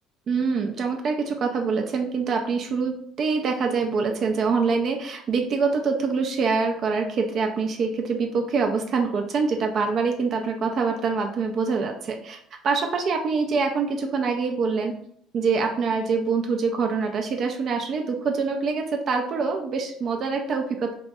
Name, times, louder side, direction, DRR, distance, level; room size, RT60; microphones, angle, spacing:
voice 1, 0.3-15.0 15.3-20.9, right 4 dB, 50° right, 3 dB, 0.3 m, -25 dB
2.2 x 2.1 x 2.7 m, 0.67 s
hypercardioid pair, 65°, 0 cm